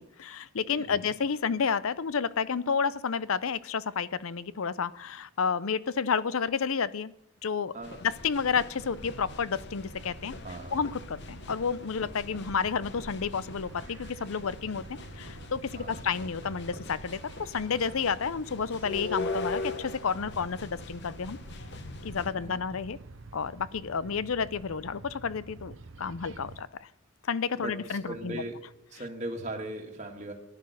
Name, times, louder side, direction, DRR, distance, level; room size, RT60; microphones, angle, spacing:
voice 1, 0.0-7.1 7.4-7.7 8.0-10.3 10.7-14.8 15.1-21.4 22.0-23.0 23.3-26.9 27.3-28.4, left 6 dB, 70° left, 18 dB, 0.6 m, -30 dB
voice 2, 7.7-8.1 10.4-10.8 15.7-16.1 22.4-22.6 27.6-28.6 28.9-30.3, right 1 dB, 30° right, 2 dB, 1.7 m, -39 dB
sound 1, 7.8-22.3, left 3 dB, 50° left, 1.0 m, -41 dB
sound 2, 8.8-26.6, right 3 dB, 60° right, 0.8 m, -48 dB
14.5 x 11.0 x 6.4 m, 0.80 s
head